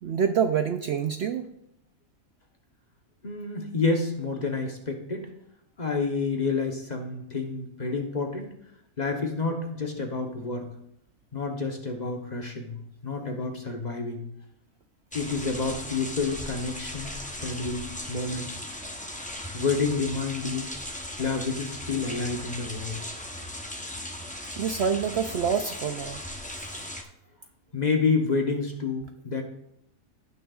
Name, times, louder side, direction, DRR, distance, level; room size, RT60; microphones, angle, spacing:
voice 1, 0.0-1.5 24.5-26.2, right 7 dB, 65° right, 7 dB, 0.7 m, -26 dB
voice 2, 3.2-5.3 5.8-8.5 9.0-10.7 11.3-12.8 13.0-14.2 15.1-18.6 19.5-20.7 21.2-23.0 27.7-29.4, left 4 dB, 35° left, 3 dB, 1.0 m, -29 dB
sound 1, 15.1-27.0, left 1 dB, 10° left, 0.5 m, -37 dB
16.5 x 6.4 x 2.4 m, 0.76 s
omnidirectional pair, 1.5 m